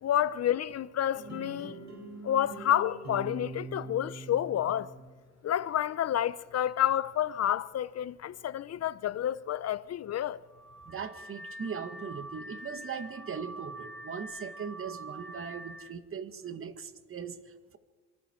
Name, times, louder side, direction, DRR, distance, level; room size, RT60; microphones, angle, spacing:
voice 1, 0.0-1.8 2.2-4.9 5.4-10.4, left 11 dB, 55° left, 0.8 m, -29 dB
sound 1, 1.1-5.1, right 3 dB, 65° right, 6.6 m, -43 dB
Car / Alarm, 10.5-15.9, right 1 dB, ahead, 2.3 m, -45 dB
voice 2, 10.9-17.8, right 6 dB, 45° right, 1.8 m, -39 dB
26.5 x 24.5 x 4.6 m
cardioid pair, 90°, 30 cm